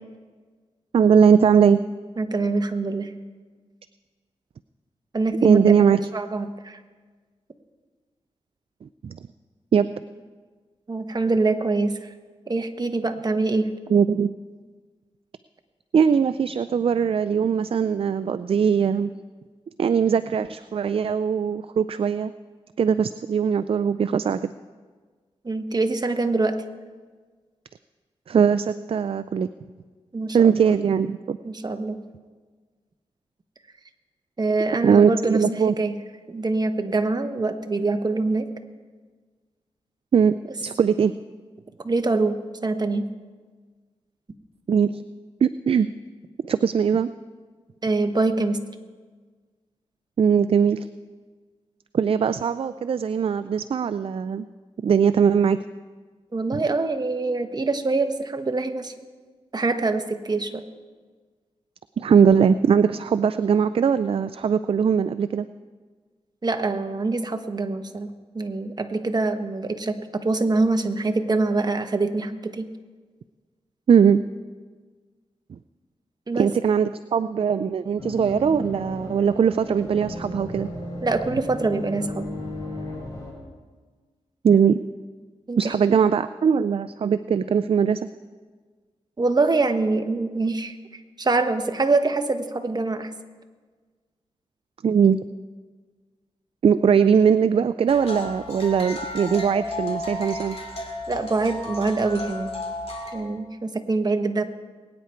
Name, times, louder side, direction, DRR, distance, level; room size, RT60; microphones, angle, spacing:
voice 1, 0.9-1.8 5.4-6.0 9.0-9.2 9.7-9.9 13.9-14.3 15.9-19.1 19.8-22.3 22.8-24.5 28.3-29.5 30.3-31.4 34.8-35.7 40.1-40.3 40.6-41.1 44.7-45.0 45.4-45.9 46.5-47.1 50.2-50.9 51.9-54.5 54.8-55.6 62.0-65.5 73.9-74.2 76.4-80.7 84.4-84.8 85.6-88.0 94.8-95.2 96.6-100.6, right 7 dB, 55° right, 13 dB, 0.4 m, -20 dB
voice 2, 2.2-3.1 5.1-5.8 6.1-6.8 10.9-12.1 12.5-13.7 25.4-26.6 30.1-30.7 31.4-32.0 34.4-35.4 35.8-36.0 36.3-38.5 41.8-43.1 47.8-48.6 56.3-58.9 59.5-60.6 66.4-72.7 76.3-76.5 81.0-82.3 85.5-85.7 89.2-90.7 91.2-93.1 101.1-102.5 103.1-104.4, right 3 dB, 35° right, 7 dB, 1.2 m, -24 dB
sound 1, 78.0-83.3, left 1 dB, 30° left, 5.6 m, -35 dB
sound 2, 97.9-103.1, left 1 dB, 60° left, 2.5 m, -33 dB
22.0 x 9.5 x 4.5 m, 1.5 s
cardioid pair, 65°, 11 cm